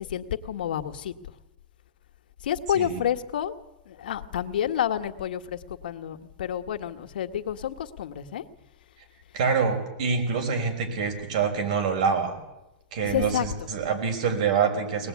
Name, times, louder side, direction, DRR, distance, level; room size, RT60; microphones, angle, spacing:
voice 1, 0.1-1.1 2.4-3.5 3.9-5.6 5.8-8.4 13.1-13.4, left 10 dB, 85° left, 8 dB, 1.6 m, -29 dB
voice 2, 9.3-12.4 12.9-15.1, right 6 dB, 55° right, 4 dB, 5.8 m, -26 dB
23.5 x 19.5 x 9.7 m, 0.97 s
supercardioid pair, 170°, 5 cm